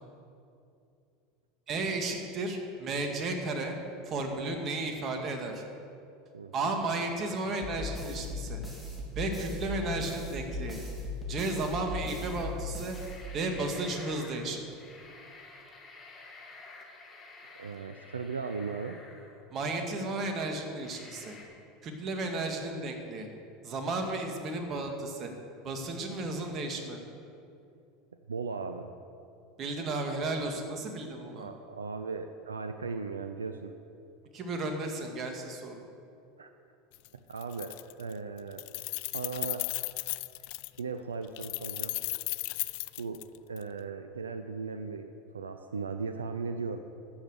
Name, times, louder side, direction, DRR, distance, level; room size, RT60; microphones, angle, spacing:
voice 1, 1.7-3.8 4.1-5.6 6.5-8.6 9.2-10.8 11.3-13.0 13.3-14.6 19.5-21.3 21.8-23.3 23.6-25.3 25.6-27.0 29.6-31.5 34.3-35.8, right 2 dB, 40° right, 4 dB, 2.1 m, -33 dB
voice 2, 6.3-6.7 17.6-19.0 28.3-28.9 31.3-33.8 36.4-36.5 37.3-39.7 40.8-42.0 42.9-46.8, right 4 dB, 85° right, 8 dB, 0.5 m, -37 dB
sound 1, 7.6-13.7, left 2 dB, 5° right, 3.2 m, -38 dB
sound 2, 12.3-12.5 12.8-19.6 20.2-20.3 20.8-21.4, left 3 dB, 30° left, 2.5 m, -51 dB
Keys jangling, 36.9-37.1 37.4-38.1 38.4-40.8 41.4-43.6, left 24 dB, 60° left, 0.3 m, -35 dB
13.0 x 7.2 x 8.0 m, 2.5 s
hypercardioid pair, 80°, 0 cm